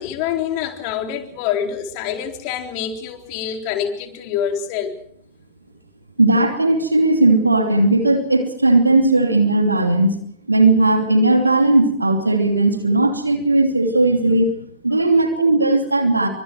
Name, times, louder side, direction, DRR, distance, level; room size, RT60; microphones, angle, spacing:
voice 1, 0.0-4.9, left 9 dB, 45° left, 4 dB, 3.9 m, -26 dB
voice 2, 6.2-10.1 10.5-16.3, right 2 dB, 80° right, 5 dB, 2.8 m, -17 dB
27.5 x 24.5 x 4.7 m, 0.65 s
figure-of-eight pair, 90°, 0 cm